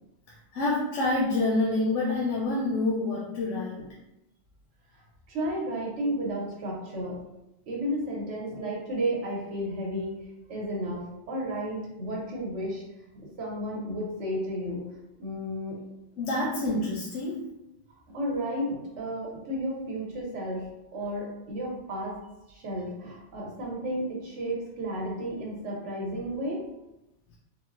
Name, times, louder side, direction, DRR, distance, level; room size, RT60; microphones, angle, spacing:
voice 1, 0.5-3.8 16.2-17.4, left 2 dB, 90° left, -3 dB, 0.9 m, -27 dB
voice 2, 5.3-7.2 7.7-10.2 10.5-12.8 13.1-14.8 15.2-15.8 18.1-22.2 22.5-26.6, equal, 85° right, -3 dB, 1.2 m, -32 dB
3.6 x 2.1 x 2.4 m, 0.90 s
omnidirectional pair, 1.2 m